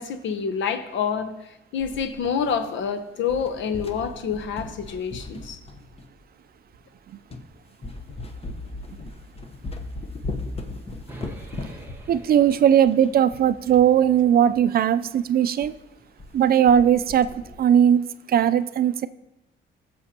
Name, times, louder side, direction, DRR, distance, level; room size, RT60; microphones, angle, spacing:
voice 1, 0.0-1.3 1.7-5.6, left 6 dB, 70° left, 10 dB, 0.9 m, -27 dB
sound 1, 1.8-2.9 3.2-6.2 6.8-6.9 7.3-7.5 7.8-13.9 14.2-14.3 14.5-14.6 15.0-15.2 15.6-15.7 16.0-16.4 16.7-17.6, left 2 dB, 30° left, 0.9 m, -37 dB
sound 2, 11.1-15.3, right 2 dB, 10° right, 1.3 m, -47 dB
voice 2, 12.1-15.7 16.3-19.1, right 9 dB, 50° right, 13 dB, 0.4 m, -19 dB
15.5 x 6.9 x 2.8 m, 0.92 s
cardioid pair, 90°, 20 cm